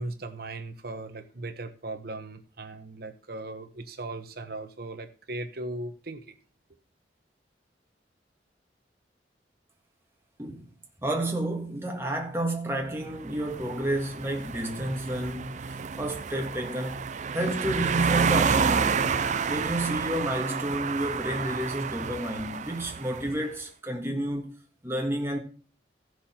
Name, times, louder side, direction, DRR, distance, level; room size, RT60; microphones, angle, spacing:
voice 1, 0.0-6.2, right 2 dB, 55° right, 1.1 m, -38 dB
voice 2, 11.0-17.0 17.3-19.1 19.5-24.5 24.8-25.4, right 1 dB, 15° right, 1.7 m, -30 dB
sound 1, 13.1-23.4, right 6 dB, 40° right, 0.4 m, -30 dB
14.5 x 6.2 x 4.3 m
head